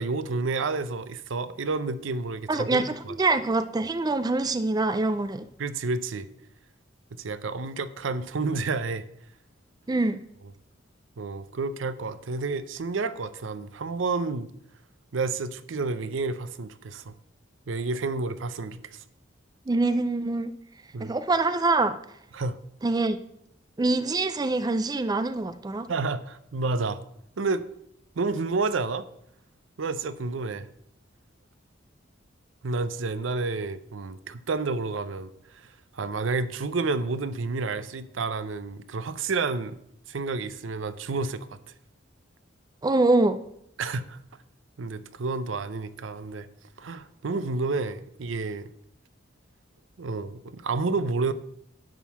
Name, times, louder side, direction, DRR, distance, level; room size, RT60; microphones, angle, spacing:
voice 1, 0.0-3.1 5.6-6.3 7.2-9.0 11.2-14.5 15.1-17.1 17.7-19.0 20.9-21.1 22.3-22.6 25.9-27.0 27.4-27.6 28.2-29.1 29.8-30.7 32.6-39.8 40.1-41.6 43.8-44.2 44.8-46.5 46.8-48.7 50.0-51.3, right 3 dB, 75° right, 0.6 m, -30 dB
voice 2, 2.5-5.5 9.9-10.2 19.7-20.5 21.0-22.0 22.8-23.2 23.8-25.9 42.8-43.4, right 2 dB, 20° right, 0.4 m, -24 dB
10.5 x 3.8 x 7.1 m
head